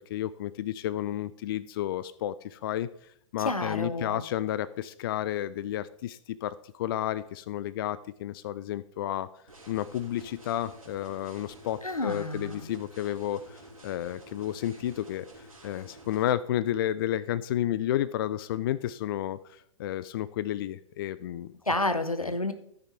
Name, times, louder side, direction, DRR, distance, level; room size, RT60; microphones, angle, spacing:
voice 1, 0.0-9.3 9.7-21.5 22.2-22.3, left 12 dB, 40° left, 17 dB, 0.4 m, -32 dB
voice 2, 3.4-4.2 11.8-12.7 21.7-22.5, left 2 dB, 90° left, 10 dB, 1.1 m, -30 dB
sound 1, 9.5-16.3, right 1 dB, 80° right, 3.0 m, -50 dB
14.0 x 6.2 x 4.4 m, 0.70 s
figure-of-eight pair, 110°, 18 cm